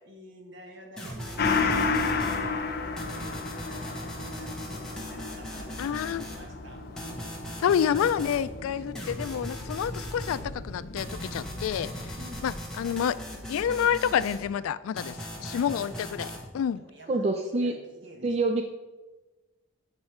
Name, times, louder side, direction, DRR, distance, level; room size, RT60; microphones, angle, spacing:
voice 1, 0.0-6.8 12.2-12.5 15.4-16.2 16.7-18.3, right 1 dB, 60° right, 2 dB, 1.3 m, -49 dB
sound 1, 1.0-2.4 3.0-6.5 7.0-8.4 8.9-10.4 11.0-14.5 15.0-16.4, equal, 5° left, 1.1 m, -39 dB
Gong, 1.4-10.3 10.7-10.8, left 4 dB, 50° left, 0.6 m, -32 dB
sound 2, 5.5-12.6, left 1 dB, 65° left, 1.1 m, -44 dB
voice 2, 5.8-6.3 7.6-12.2 12.4-13.2 13.5-16.8, left 8 dB, 90° left, 17 dB, 0.3 m, -28 dB
voice 3, 17.1-17.7 18.2-18.6, right 2 dB, 30° right, 4 dB, 0.4 m, -26 dB
7.6 x 4.4 x 4.4 m, 1.1 s
head